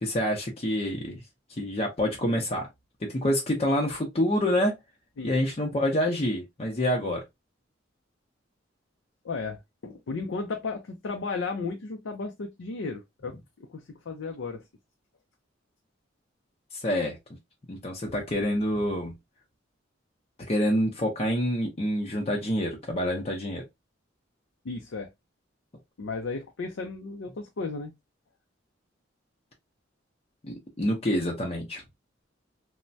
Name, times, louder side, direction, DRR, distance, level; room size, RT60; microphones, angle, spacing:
voice 1, 0.0-1.2 1.6-2.7 3.0-4.7 5.2-7.2 16.7-17.2 17.7-19.1 20.5-23.6 30.4-31.8, equal, 30° left, 0.6 m, -27 dB
voice 2, 9.2-14.6 24.6-25.1 26.0-27.9, left 4 dB, 75° left, 0.5 m, -34 dB
3.2 x 2.1 x 2.5 m
head